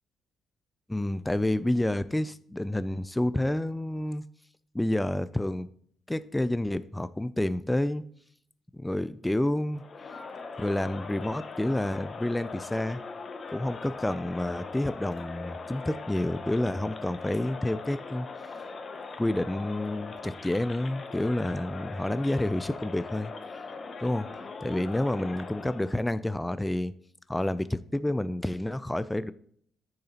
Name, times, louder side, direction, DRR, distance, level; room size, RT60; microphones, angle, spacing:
voice 1, 0.9-4.2 4.7-5.7 6.1-8.0 8.7-9.8 10.6-13.0 13.5-18.3 19.2-23.3 24.0-26.9 27.3-29.3, left 1 dB, 10° left, 0.3 m, -29 dB
Crowd, 9.7-26.0, left 4 dB, 40° left, 0.9 m, -41 dB
10.0 x 6.6 x 2.9 m
cardioid pair, 90°, 0 cm